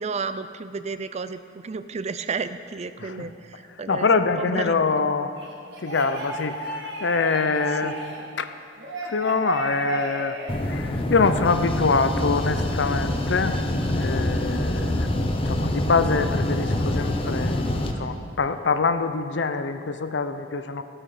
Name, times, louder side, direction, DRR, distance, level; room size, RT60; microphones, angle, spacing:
voice 1, 0.0-3.3 3.8-4.1 4.4-4.8 7.5-8.1, right 4 dB, 35° right, 12 dB, 0.4 m, -32 dB
voice 2, 3.0-3.3 3.9-5.3 5.8-8.0 8.4-8.5 9.0-10.4 10.7-13.6 13.9-15.1 15.4-17.6 18.0-20.8, left 4 dB, 70° left, 10 dB, 0.6 m, -24 dB
sound 1, 5.3-8.2 8.8-10.5, right 2 dB, 70° right, 2.3 m, -33 dB
sound 2, 10.5-17.9, left 1 dB, 30° left, 0.9 m, -25 dB
15.0 x 8.8 x 5.0 m, 2.3 s
head